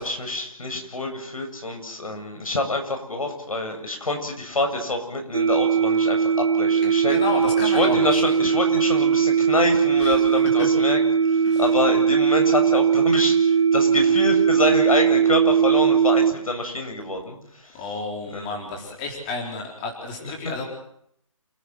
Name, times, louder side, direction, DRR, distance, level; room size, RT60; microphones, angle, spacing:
voice 1, 0.0-7.1 7.6-17.8 18.3-18.7 20.2-20.5, left 2 dB, 85° left, 5 dB, 7.6 m, -27 dB
sound 1, 5.3-16.3, right 7 dB, 65° right, 3.2 m, -19 dB
voice 2, 7.1-8.2 10.0-10.2 10.6-10.7 11.4-11.6 17.3-17.4 17.7-20.6, left 3 dB, 15° left, 2 dB, 4.1 m, -31 dB
28.5 x 16.5 x 8.0 m, 0.72 s
hypercardioid pair, 170°, 18 cm